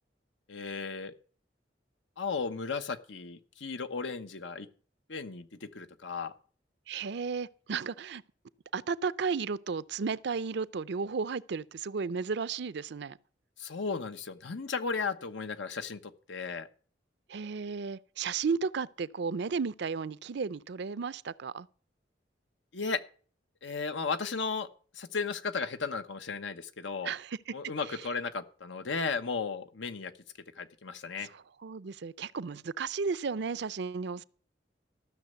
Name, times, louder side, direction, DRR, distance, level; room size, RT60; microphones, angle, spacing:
voice 1, 0.5-1.1 2.2-4.7 5.1-6.3 13.6-16.7 22.7-23.0 23.6-24.7 24.9-27.1 27.5-30.1 30.6-31.3, left 4 dB, 90° left, 1.1 m, -35 dB
voice 2, 6.9-8.2 8.7-13.2 17.3-21.7 27.0-27.5 27.8-28.0 31.2-34.2, right 5 dB, 65° right, 0.5 m, -34 dB
14.0 x 6.4 x 8.0 m
head